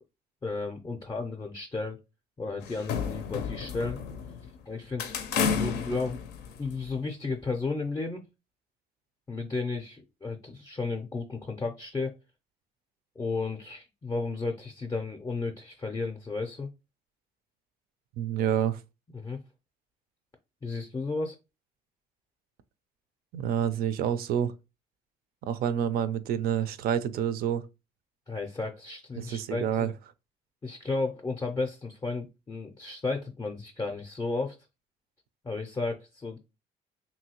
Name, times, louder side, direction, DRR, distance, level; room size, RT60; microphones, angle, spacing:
voice 1, 0.4-2.0 2.4-4.0 4.7-6.2 6.6-8.2 9.3-12.1 13.2-16.7 19.1-19.4 20.6-21.4 28.3-29.9 30.6-34.6 35.4-36.4, left 3 dB, 20° left, 0.4 m, -33 dB
sound 1, 2.6-4.6 5.0-6.9, left 6 dB, 85° left, 0.5 m, -31 dB
voice 2, 18.2-18.8 23.3-24.5 25.4-27.6 29.2-29.9, right 9 dB, 65° right, 0.4 m, -28 dB
3.0 x 2.6 x 2.8 m
cardioid pair, 110°, 17 cm